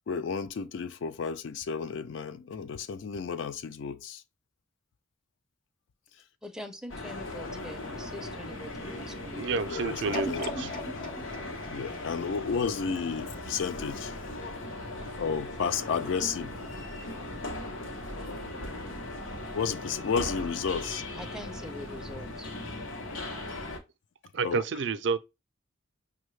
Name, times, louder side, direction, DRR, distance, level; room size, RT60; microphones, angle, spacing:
voice 1, 0.1-4.2 9.7-10.7 11.7-14.1 15.2-16.5 19.5-21.0 24.4-24.6, left 6 dB, 70° left, 0.4 m, -32 dB
voice 2, 6.4-9.4 21.1-22.5, equal, 5° right, 0.4 m, -43 dB
sound 1, 6.9-23.8, left 1 dB, 90° left, 0.9 m, -38 dB
voice 3, 9.4-10.7 24.3-25.2, right 4 dB, 60° right, 0.4 m, -30 dB
sound 2, 10.1-13.2 13.7-13.8, left 2 dB, 45° left, 0.8 m, -39 dB
5.4 x 2.2 x 3.1 m
head